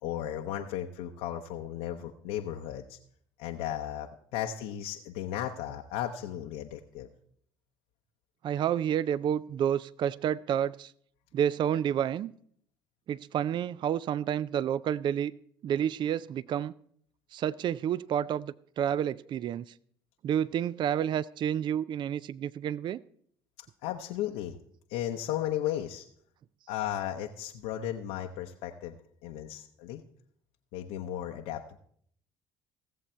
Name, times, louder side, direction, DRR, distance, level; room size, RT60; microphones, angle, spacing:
voice 1, 0.0-3.0 3.4-7.1 23.6-24.6 24.9-26.0 26.7-30.0 30.7-31.8, left 11 dB, 80° left, 2 dB, 0.7 m, -35 dB
voice 2, 8.4-10.9 11.3-12.3 13.1-15.3 15.6-16.7 17.3-19.7 20.2-23.0, right 9 dB, 50° right, 21 dB, 0.4 m, -29 dB
16.5 x 7.2 x 4.4 m, 0.63 s
supercardioid pair, 70°, 10 cm